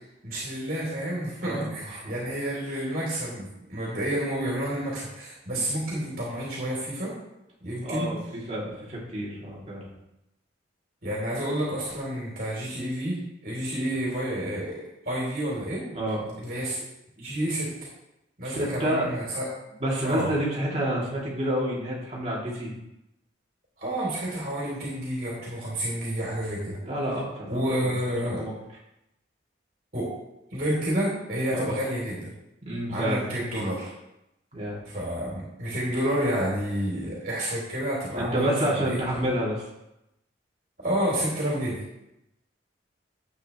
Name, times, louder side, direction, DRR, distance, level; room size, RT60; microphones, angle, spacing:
voice 1, 0.2-7.1 7.6-8.1 11.0-14.8 15.0-15.8 16.4-16.8 17.2-17.7 18.4-19.5 20.0-20.3 23.8-26.8 27.5-28.4 29.9-30.1 30.5-32.3 32.9-33.9 34.9-39.0 40.8-41.8, equal, 50° right, -5 dB, 3.3 m, -29 dB
voice 2, 1.4-2.1 5.5-5.6 7.8-9.9 15.9-16.3 18.4-19.1 19.8-22.7 26.8-28.5 31.5-31.7 32.6-33.2 34.5-34.8 38.1-39.6, right 1 dB, 35° right, -5 dB, 2.8 m, -29 dB
11.5 x 8.4 x 3.1 m, 0.88 s
head